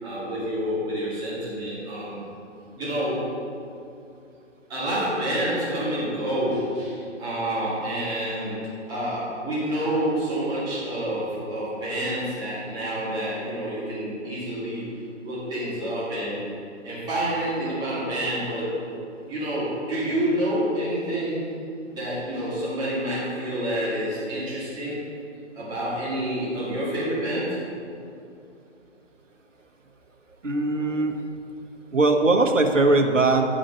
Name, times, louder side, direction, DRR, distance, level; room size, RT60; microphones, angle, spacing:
voice 1, 0.0-2.2 2.8-3.3 4.7-14.9 15.2-16.4 16.8-18.7 19.3-21.4 21.9-25.0 25.5-27.6, right 1 dB, 10° right, -10 dB, 2.0 m, -28 dB
voice 2, 30.4-31.1 31.9-33.4, right 2 dB, 85° right, 4 dB, 1.1 m, -20 dB
10.5 x 5.0 x 5.4 m, 2.6 s
figure-of-eight pair, 140°, 37 cm